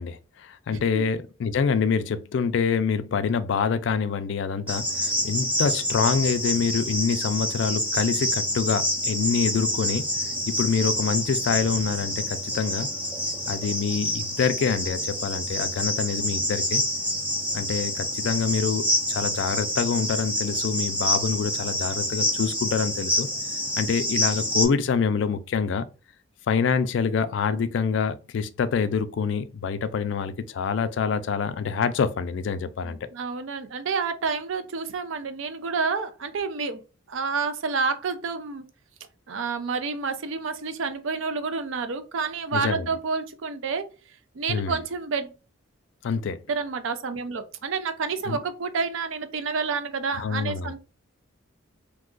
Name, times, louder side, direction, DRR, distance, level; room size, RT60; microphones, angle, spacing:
voice 1, 0.0-10.0 10.5-12.9 13.5-16.8 17.5-23.3 23.8-25.9 26.5-33.0 42.5-42.9 44.5-44.8 46.0-46.4 48.3-48.4 50.1-50.7, left 6 dB, 60° left, 0.3 m, -26 dB
Cricket, 4.7-24.7, equal, 5° right, 0.4 m, -27 dB
voice 2, 32.8-36.8 37.1-38.6 39.3-43.9 44.3-45.3 46.5-50.8, right 4 dB, 70° right, 0.4 m, -29 dB
2.6 x 2.3 x 3.7 m
head